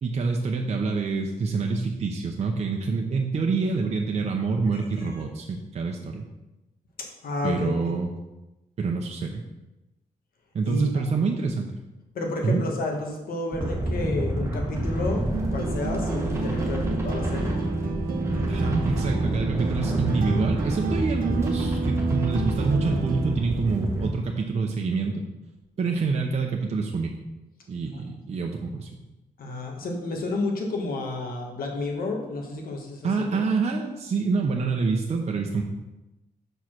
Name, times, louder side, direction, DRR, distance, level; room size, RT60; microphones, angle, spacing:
voice 1, 0.0-6.2 7.4-8.1 8.8-9.4 10.5-11.7 12.4-12.6 18.5-25.2 25.8-27.1 27.7-28.9 33.0-35.6, right 4 dB, 50° right, 1 dB, 0.7 m, -26 dB
voice 2, 4.7-5.2 7.0-7.9 10.7-11.0 12.1-17.6 27.9-28.0 29.4-33.4, left 2 dB, 85° left, 1 dB, 1.5 m, -31 dB
sound 1, 13.5-24.1, right 1 dB, 20° right, 1.3 m, -28 dB
sound 2, 15.3-23.3, right 4 dB, 75° right, 0.8 m, -30 dB
5.5 x 4.8 x 5.9 m, 1.0 s
wide cardioid pair, 135°, 15 cm